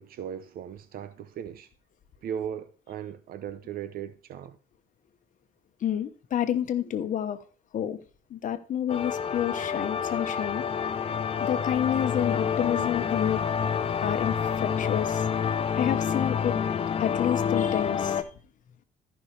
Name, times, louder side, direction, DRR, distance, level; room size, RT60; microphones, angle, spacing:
voice 1, 0.0-1.7 2.2-4.6, right 9 dB, 60° right, 0.7 m, -37 dB
voice 2, 5.8-7.4 7.7-8.0 8.3-10.6 11.4-13.4 14.0-15.2 15.7-16.5 17.0-18.3, left 10 dB, 50° left, 1.1 m, -29 dB
sound 1, 8.9-18.2, left 7 dB, 35° left, 0.7 m, -28 dB
13.5 x 5.7 x 3.3 m
cardioid pair, 110°, 17 cm